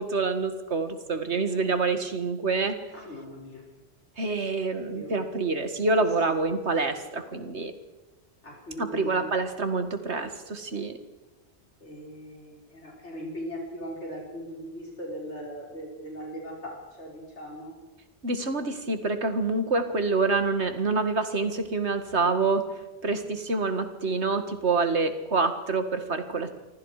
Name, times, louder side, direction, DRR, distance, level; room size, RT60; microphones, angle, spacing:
voice 1, 0.0-2.8 4.2-7.7 8.8-11.0 18.2-22.7 23.0-26.5, right 3 dB, 75° right, 8 dB, 2.2 m, -27 dB
voice 2, 1.2-1.7 2.9-3.6 4.8-5.4 5.7-5.8 6.3-6.4 8.4-9.3 11.8-17.8 24.9-25.0, equal, 85° left, -2 dB, 5.5 m, -40 dB
27.5 x 25.0 x 5.0 m, 1.1 s
omnidirectional pair, 1.1 m